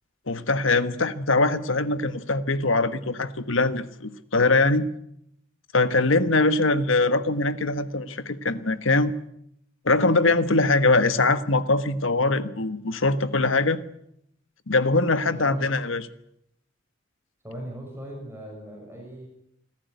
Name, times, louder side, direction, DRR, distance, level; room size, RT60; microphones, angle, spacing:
voice 1, 0.3-4.9 5.7-9.2 9.8-13.8 14.7-16.0, left 3 dB, 70° left, 12 dB, 1.4 m, -22 dB
voice 2, 15.3-15.7 17.4-19.3, right 1 dB, 10° right, 0 dB, 6.3 m, -39 dB
26.5 x 15.0 x 9.5 m, 0.76 s
head